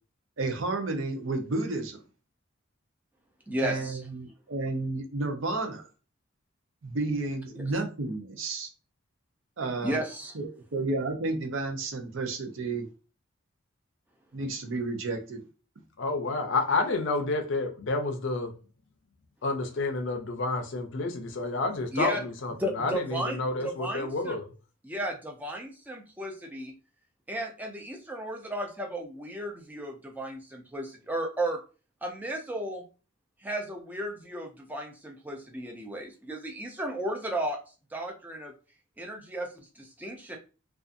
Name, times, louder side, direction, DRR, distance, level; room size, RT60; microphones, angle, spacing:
voice 1, 0.4-2.0 3.6-5.9 6.8-8.7 9.6-10.0 10.3-12.9 14.3-15.4, right 2 dB, 65° right, 0.6 m, -31 dB
voice 2, 3.5-4.0 9.8-10.3 21.9-22.2 22.6-24.4 24.8-26.7 27.3-31.6 32.0-32.8 33.4-37.6 37.9-38.5 39.0-40.4, right 1 dB, 10° right, 0.4 m, -34 dB
voice 3, 16.0-18.5 19.4-24.4, left 3 dB, 60° left, 0.5 m, -29 dB
2.5 x 2.4 x 2.5 m
head